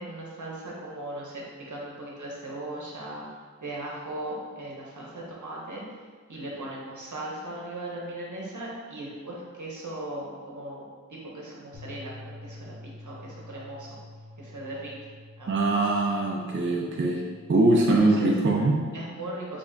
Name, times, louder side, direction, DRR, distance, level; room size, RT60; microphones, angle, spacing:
voice 1, 0.0-3.2 3.6-5.8 6.3-14.0 14.4-15.1 15.4-15.7 17.9-18.3 18.9-19.6, right 1 dB, 75° right, -4 dB, 0.8 m, -38 dB
Bass guitar, 11.7-18.0, left 2 dB, 80° left, 0.9 m, -47 dB
voice 2, 15.5-17.2 17.5-18.9, right 2 dB, 40° right, -1 dB, 0.4 m, -22 dB
3.4 x 2.2 x 3.8 m, 1.5 s
wide cardioid pair, 45°, 30 cm